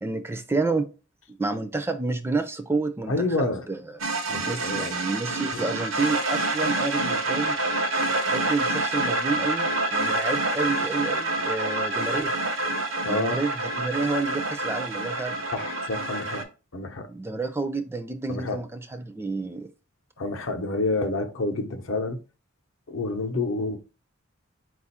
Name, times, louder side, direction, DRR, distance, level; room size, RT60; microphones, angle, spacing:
voice 1, 0.0-0.9 1.3-4.0 4.5-7.5 8.3-12.3 13.1-15.8 17.1-19.7, right 3 dB, 10° right, 0.3 m, -30 dB
voice 2, 3.1-3.7 4.3-5.0 13.0-13.4 15.5-16.5 16.7-17.1 18.3-18.6 20.2-22.2 22.9-23.8, left 2 dB, 70° left, 0.7 m, -28 dB
sound 1, 4.0-16.4, right 2 dB, 90° right, 0.7 m, -27 dB
4.2 x 2.4 x 4.1 m
head